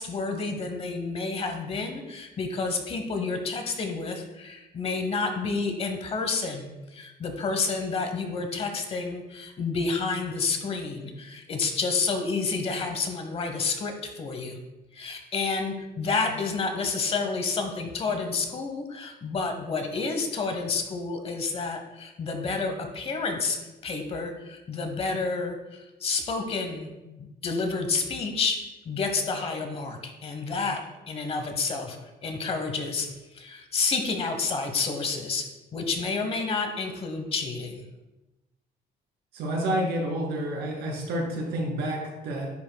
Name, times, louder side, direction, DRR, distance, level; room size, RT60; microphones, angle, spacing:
voice 1, 0.0-14.6 14.9-23.6 23.8-26.9 27.4-28.6 28.8-30.8 31.1-35.4 35.7-37.8, left 4 dB, 35° left, 5 dB, 0.9 m, -29 dB
voice 2, 39.3-42.5, right 1 dB, 85° right, -1 dB, 2.3 m, -29 dB
10.5 x 5.1 x 2.2 m, 1.0 s
cardioid pair, 160°, 17 cm